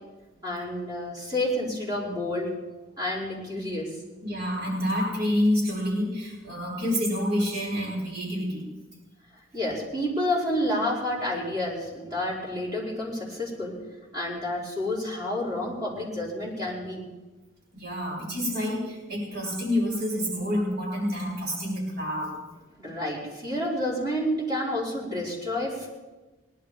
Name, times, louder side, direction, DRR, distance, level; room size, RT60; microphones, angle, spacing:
voice 1, 0.4-2.6 3.0-3.9 9.5-13.8 14.1-17.0 22.8-25.9, left 1 dB, 20° right, -6 dB, 5.0 m, -29 dB
voice 2, 4.2-8.7 17.7-22.4, equal, 55° right, -5 dB, 6.6 m, -28 dB
19.5 x 11.5 x 5.2 m, 1.2 s
head